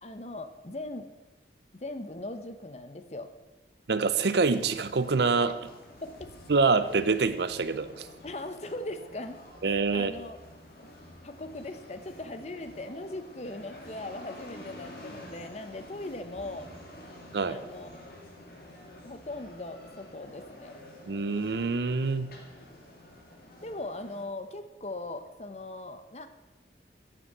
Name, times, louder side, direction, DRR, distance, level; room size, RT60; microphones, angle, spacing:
voice 1, 0.0-1.1 1.7-3.3 6.0-6.3 8.2-9.4 9.6-10.4 11.2-16.7 17.5-17.9 19.0-20.8 23.6-26.3, left 2 dB, 40° left, 9 dB, 0.8 m, -39 dB
voice 2, 3.9-5.6 6.5-8.1 9.6-10.1 17.3-17.6 21.1-22.3, right 4 dB, 75° right, 13 dB, 0.6 m, -26 dB
sound 1, 4.4-24.2, left 1 dB, 55° left, 2.3 m, -49 dB
9.0 x 6.9 x 7.9 m, 1.1 s
head